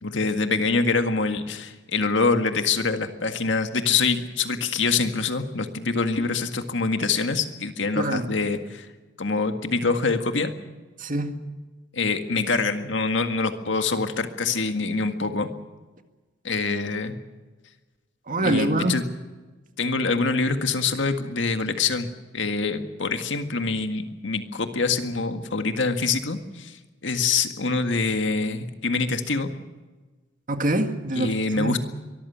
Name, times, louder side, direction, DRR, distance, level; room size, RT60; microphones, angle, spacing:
voice 1, 0.0-8.9 9.2-10.5 11.9-15.5 16.4-17.1 18.4-19.1 19.8-22.1 22.3-29.5 31.1-31.8, left 4 dB, 70° left, 7 dB, 1.8 m, -25 dB
voice 2, 7.9-8.3 11.0-11.4 18.3-19.0 30.5-31.8, right 1 dB, 45° right, 7 dB, 1.9 m, -25 dB
23.5 x 14.5 x 9.4 m, 1.3 s
head